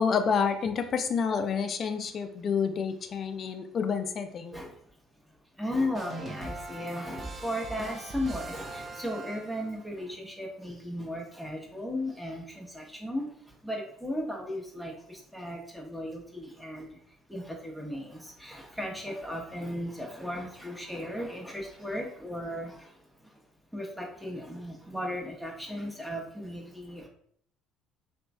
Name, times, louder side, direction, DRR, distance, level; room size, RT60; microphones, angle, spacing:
voice 1, 0.0-4.5, left 6 dB, 50° left, 7 dB, 0.4 m, -28 dB
voice 2, 5.3-23.4 23.7-27.1, left 1 dB, ahead, -1 dB, 0.8 m, -36 dB
sound 1, 5.9-9.8, right 3 dB, 35° right, 0.6 m, -40 dB
3.0 x 2.5 x 2.2 m, 0.66 s
hypercardioid pair, 60°, 0 cm